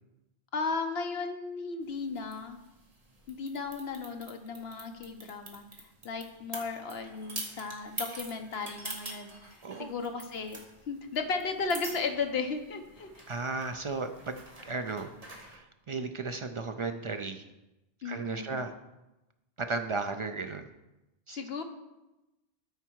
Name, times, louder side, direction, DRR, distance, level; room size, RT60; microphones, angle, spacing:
voice 1, 0.5-2.6 3.3-5.6 6.0-9.3 9.8-13.1 18.0-18.6 21.3-21.6, left 4 dB, 65° left, 6 dB, 1.1 m, -35 dB
sound 1, 1.8-15.6, right 2 dB, 35° right, 1.3 m, -46 dB
voice 2, 13.3-15.1 15.3-17.4 18.0-18.7 19.6-20.6 21.3-21.4, right 3 dB, 55° right, 6 dB, 0.3 m, -35 dB
13.0 x 4.7 x 4.6 m, 0.99 s
omnidirectional pair, 1.1 m